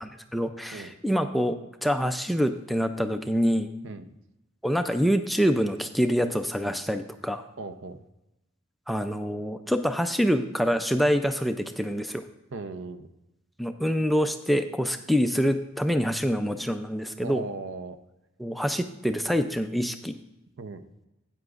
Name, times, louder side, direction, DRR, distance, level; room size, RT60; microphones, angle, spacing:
voice 1, 0.0-1.6 1.8-3.7 4.6-7.4 8.9-12.2 13.6-17.4 18.4-20.2, equal, ahead, 7 dB, 0.3 m, -26 dB
voice 2, 7.6-8.0 12.5-13.1 17.2-18.0 20.6-20.8, right 3 dB, 65° right, 10 dB, 0.6 m, -37 dB
12.5 x 9.1 x 2.4 m, 0.94 s
head